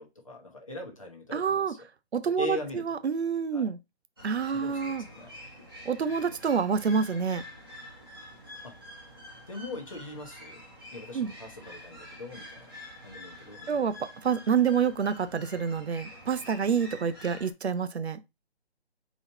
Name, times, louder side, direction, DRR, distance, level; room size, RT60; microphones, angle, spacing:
voice 1, 0.0-1.9 2.3-2.9 3.5-3.7 4.5-5.3 8.6-8.8 9.5-10.6 10.9-12.7 13.0-13.7, left 2 dB, 30° left, 0.8 m, -40 dB
voice 2, 1.3-1.7 2.1-3.8 4.2-5.0 5.8-7.4 11.1-11.3 13.7-18.2, right 6 dB, 75° right, 0.7 m, -28 dB
sound 1, 4.2-17.5, left 1 dB, 20° right, 0.9 m, -47 dB
4.1 x 3.0 x 4.1 m
hypercardioid pair, 175°, 33 cm